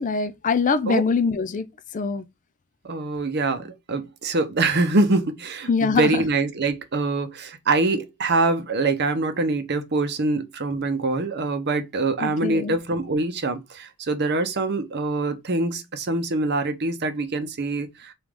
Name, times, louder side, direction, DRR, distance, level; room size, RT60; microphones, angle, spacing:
voice 1, 0.0-1.7 1.9-2.2 5.7-6.1 12.2-12.7, left 5 dB, 35° left, 0.4 m, -23 dB
voice 2, 2.8-18.1, right 3 dB, 50° right, 0.7 m, -24 dB
4.9 x 2.5 x 3.6 m
head